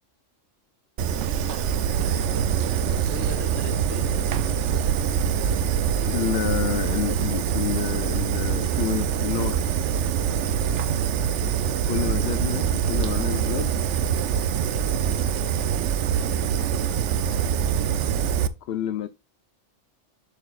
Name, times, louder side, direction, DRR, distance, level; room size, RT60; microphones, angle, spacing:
Fire, 1.0-18.5, right 8 dB, 75° right, 0.9 m, -24 dB
voice 1, 1.5-2.5 3.1-4.6 4.9-5.2 10.6-10.9 14.6-15.5 16.3-16.8, left 5 dB, 35° left, 1.6 m, -42 dB
voice 2, 6.0-9.6 11.9-13.7 18.6-19.1, left 11 dB, 65° left, 0.7 m, -29 dB
7.8 x 6.8 x 2.4 m
omnidirectional pair, 1.2 m